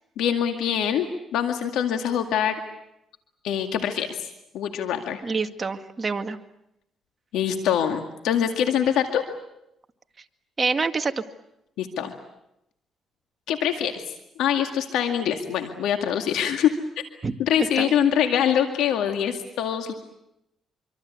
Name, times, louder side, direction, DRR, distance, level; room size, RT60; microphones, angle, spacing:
voice 1, 0.2-1.1 1.3-2.6 3.4-4.2 4.5-5.2 7.3-9.2 11.8-12.1 13.5-14.0 14.4-16.7 17.4-19.9, left 9 dB, 85° left, 5 dB, 2.1 m, -24 dB
voice 2, 5.2-6.4 10.6-11.2 17.2-17.3 17.8-17.9, right 4 dB, 30° right, 7 dB, 1.9 m, -26 dB
26.0 x 25.0 x 8.4 m, 0.84 s
cardioid pair, 90°, 0 cm